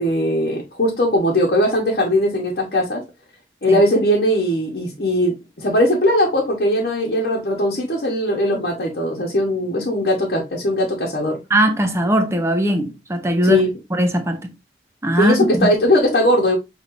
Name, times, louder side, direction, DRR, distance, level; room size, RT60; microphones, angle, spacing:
voice 1, 0.0-3.0 3.6-11.4 13.4-13.7 15.2-16.6, left 1 dB, 55° left, 1.1 m, -19 dB
voice 2, 11.5-13.6 13.9-14.5 15.0-15.7, right 1 dB, 15° right, 0.7 m, -19 dB
5.6 x 3.3 x 2.5 m
head